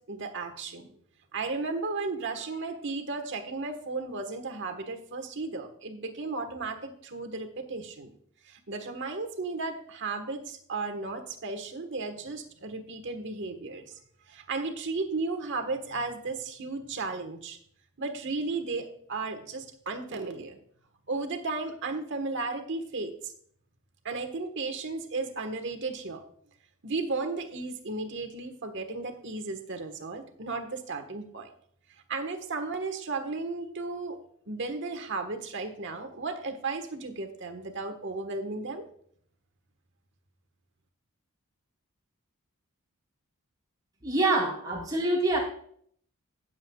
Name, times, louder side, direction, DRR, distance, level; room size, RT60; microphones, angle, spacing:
voice 1, 0.1-0.9 1.3-8.1 8.4-14.0 14.3-17.6 18.0-20.6 21.1-23.3 24.0-26.2 26.8-31.5 32.1-34.2 34.5-38.9, right 3 dB, 55° right, 6 dB, 1.4 m, -34 dB
voice 2, 44.0-45.4, right 2 dB, 15° right, -4 dB, 4.1 m, -25 dB
17.5 x 7.6 x 2.4 m, 0.63 s
head